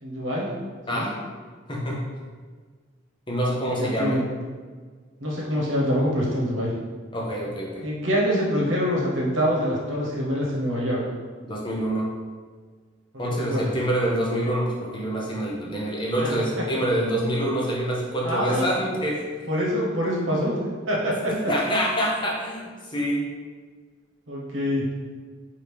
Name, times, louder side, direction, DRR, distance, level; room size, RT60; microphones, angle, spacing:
voice 1, 0.0-0.5 0.9-1.1 3.8-4.2 5.2-6.7 7.8-11.0 13.1-13.2 13.5-13.7 16.2-16.4 18.2-18.7 19.5-20.6 20.9-21.1 24.3-24.8, equal, 70° right, -4 dB, 1.1 m, -25 dB
voice 2, 3.3-4.2 7.1-7.8 11.4-12.1 13.2-19.2 21.3-23.2, equal, 25° left, -3 dB, 0.6 m, -26 dB
4.9 x 2.7 x 3.4 m, 1.5 s
head